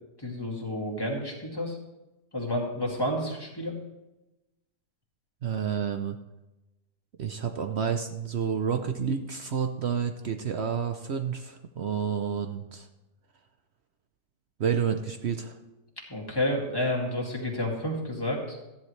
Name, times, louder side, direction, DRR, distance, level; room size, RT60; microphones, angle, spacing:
voice 1, 0.2-1.8 2.3-3.7 16.1-18.6, left 1 dB, 15° left, -2 dB, 2.2 m, -30 dB
voice 2, 5.4-6.2 7.2-12.9 14.6-15.5, right 7 dB, 70° right, 6 dB, 0.6 m, -29 dB
14.5 x 10.5 x 3.2 m, 1.0 s
omnidirectional pair, 1.9 m